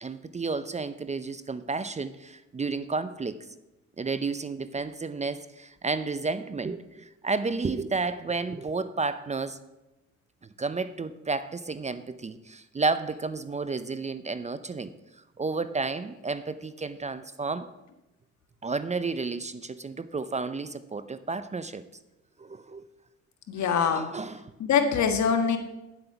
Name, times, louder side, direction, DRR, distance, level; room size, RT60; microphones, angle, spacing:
voice 1, 0.0-3.5 4.0-9.6 10.6-14.9 15.4-17.7 18.6-21.8 22.4-22.8 23.6-24.5, right 4 dB, 25° right, 13 dB, 0.5 m, -31 dB
voice 2, 23.5-24.0 24.6-25.6, left 6 dB, 65° left, 6 dB, 1.6 m, -23 dB
9.8 x 7.9 x 5.8 m, 0.97 s
cardioid pair, 90°, 30 cm